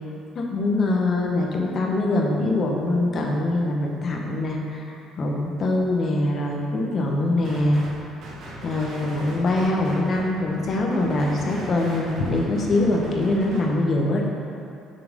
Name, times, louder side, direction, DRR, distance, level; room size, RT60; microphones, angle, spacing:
voice 1, 0.3-4.9 5.2-7.8 8.6-14.2, left 2 dB, 50° left, 0 dB, 1.2 m, -23 dB
sound 1, 7.4-7.9 8.2-13.6, right 1 dB, 65° right, 1.4 m, -39 dB
7.1 x 5.9 x 3.7 m, 2.6 s
supercardioid pair, 70°, 0 cm